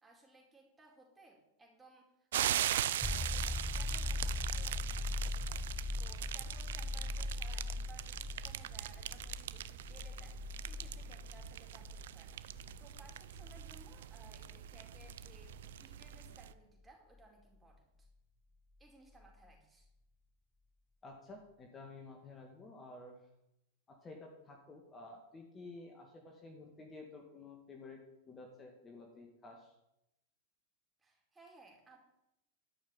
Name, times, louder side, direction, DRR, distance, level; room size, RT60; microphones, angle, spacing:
voice 1, 0.0-4.9 5.3-5.7 6.0-18.1 18.8-19.9 31.0-32.0, right 2 dB, 10° right, -1 dB, 4.5 m, -61 dB
sound 1, 2.3-16.5, right 12 dB, 70° right, 0.6 m, -41 dB
sound 2, 3.0-16.5 19.2-19.3, left 2 dB, 5° left, 0.5 m, -41 dB
voice 2, 21.0-23.2 23.9-29.7, left 3 dB, 25° left, 1 dB, 2.3 m, -52 dB
12.0 x 6.5 x 8.8 m, 0.87 s
hypercardioid pair, 105°, 0 cm